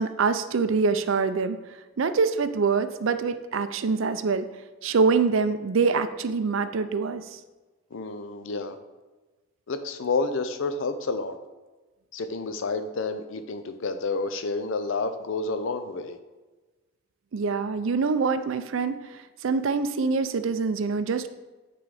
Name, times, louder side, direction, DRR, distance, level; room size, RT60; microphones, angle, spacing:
voice 1, 0.0-1.6 2.0-4.5 4.8-7.4 17.3-21.3, right 4 dB, 70° right, 11 dB, 0.5 m, -25 dB
voice 2, 7.9-8.8 9.7-11.4 12.1-16.2, left 3 dB, 65° left, 9 dB, 0.5 m, -29 dB
9.1 x 3.9 x 4.9 m, 1.2 s
head